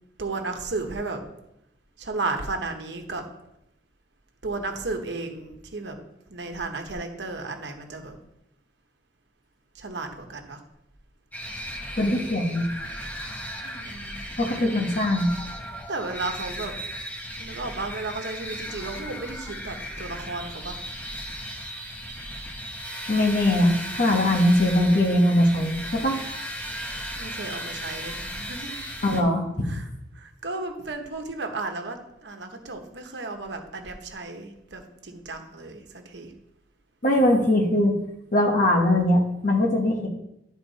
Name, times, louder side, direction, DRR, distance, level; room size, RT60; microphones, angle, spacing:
voice 1, 0.2-1.2 2.0-3.2 4.4-6.0 6.3-8.2 9.7-10.6 13.6-14.1 15.9-16.7 17.4-20.8 27.2-28.8 29.7-29.8 30.2-36.3, right 3 dB, 80° right, 4 dB, 1.1 m, -34 dB
sound 1, 11.3-29.2, equal, 10° left, 0.8 m, -36 dB
voice 2, 12.0-12.7 14.4-15.3 23.1-25.8 26.0-26.2 29.0-29.7 37.0-38.0 38.3-40.1, left 1 dB, 50° left, 1 dB, 1.2 m, -21 dB
11.5 x 4.4 x 4.1 m, 0.83 s
head